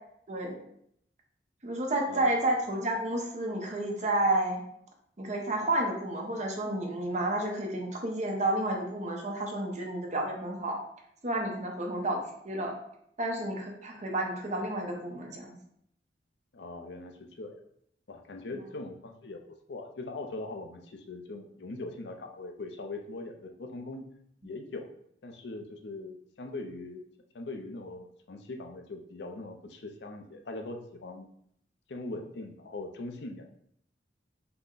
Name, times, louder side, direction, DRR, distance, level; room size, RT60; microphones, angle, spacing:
voice 1, 1.6-4.6 5.2-10.8 11.2-12.7 13.2-15.6, right 1 dB, 40° right, 1 dB, 0.9 m, -31 dB
voice 2, 16.5-17.6 18.1-24.1 24.4-24.9 25.2-27.0 27.3-31.3 31.9-33.4, left 2 dB, 75° left, 4 dB, 0.6 m, -41 dB
5.8 x 2.2 x 3.9 m, 0.71 s
head